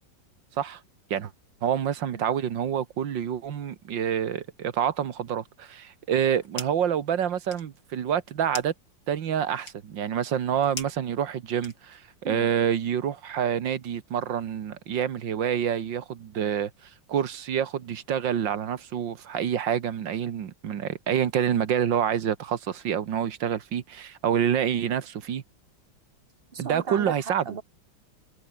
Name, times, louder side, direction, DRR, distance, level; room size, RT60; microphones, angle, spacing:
voice 1, 1.6-8.7 9.1-16.7 17.1-25.4 26.6-27.4, right 9 dB, 75° right, 2.0 m, -27 dB
sound 1, 6.1-6.9 7.3-12.2, left 3 dB, 65° left, 6.4 m, -43 dB
voice 2, 26.5-27.6, right 5 dB, 35° right, 1.3 m, -36 dB
omnidirectional pair, 2.1 m